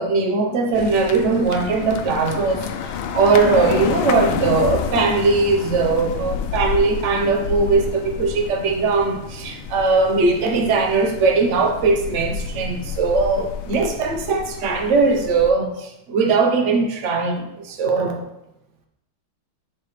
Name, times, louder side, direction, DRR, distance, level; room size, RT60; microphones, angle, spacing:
voice 1, 0.0-18.2, right 4 dB, 45° right, 3 dB, 1.1 m, -20 dB
sound 1, 0.7-15.5, left 7 dB, 85° left, 1.4 m, -29 dB
10.0 x 5.0 x 3.3 m, 0.88 s
omnidirectional pair, 2.2 m